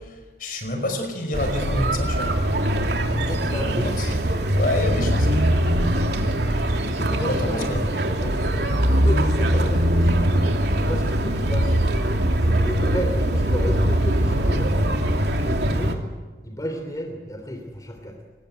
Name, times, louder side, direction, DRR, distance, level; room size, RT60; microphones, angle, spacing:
voice 1, 0.0-2.4 3.5-4.2 4.5-5.5 7.2-7.8, left 1 dB, 50° left, 6 dB, 5.2 m, -28 dB
sound 1, 1.3-15.9, right 1 dB, 70° right, 3.0 m, -22 dB
voice 2, 3.3-3.9 6.9-10.3 10.7-11.7 12.4-14.9 15.3-16.0 16.4-18.2, equal, 20° left, 3 dB, 3.2 m, -33 dB
25.5 x 20.5 x 9.1 m, 1.2 s
head